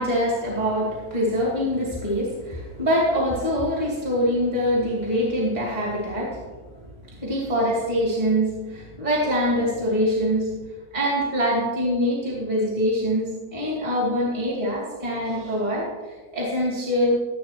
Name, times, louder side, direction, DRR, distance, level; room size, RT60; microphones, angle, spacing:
voice 1, 0.0-6.7 7.0-10.5 10.9-17.2, equal, 25° right, -5 dB, 2.8 m, -24 dB
12.5 x 11.5 x 3.0 m, 1.3 s
omnidirectional pair, 1.6 m